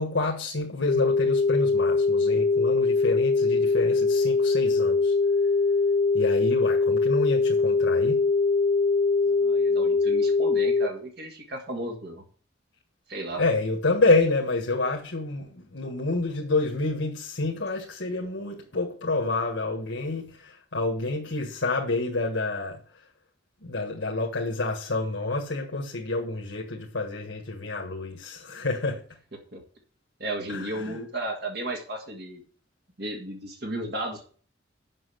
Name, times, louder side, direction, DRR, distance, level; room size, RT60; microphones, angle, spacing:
voice 1, 0.0-5.1 6.1-8.2 13.4-22.8 23.6-29.0 30.5-31.0, left 3 dB, 80° left, 0 dB, 1.6 m, -28 dB
sound 1, 0.9-10.9, left 4 dB, 55° left, 0.5 m, -22 dB
voice 2, 9.3-12.2 13.1-13.4 29.5-29.6 30.2-32.4 33.0-34.3, right 1 dB, 60° right, 2 dB, 1.8 m, -34 dB
7.7 x 6.4 x 7.8 m, 0.43 s
head